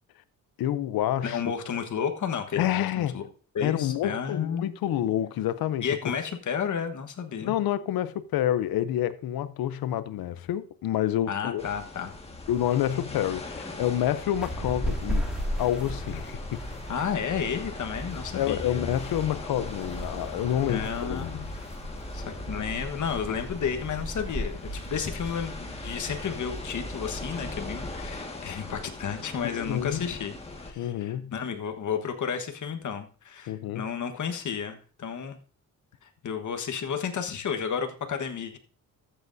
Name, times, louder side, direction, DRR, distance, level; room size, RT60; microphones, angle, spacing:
voice 1, 0.6-1.4 2.6-3.2 3.6-6.1 7.4-11.6 12.5-15.3 15.6-16.6 18.3-21.5 29.4-30.1 30.8-31.3 33.5-33.8, left 11 dB, 90° left, 0.7 m, -28 dB
voice 2, 1.2-3.3 3.5-4.7 5.8-7.6 11.3-12.2 16.9-18.9 20.7-21.5 22.1-35.4 36.0-38.6, left 7 dB, 55° left, 1.3 m, -32 dB
sound 1, 11.6-30.7, left 2 dB, 15° left, 1.7 m, -41 dB
sound 2, 14.3-28.1, equal, ahead, 2.1 m, -36 dB
14.0 x 7.9 x 2.7 m
cardioid pair, 110°, 35 cm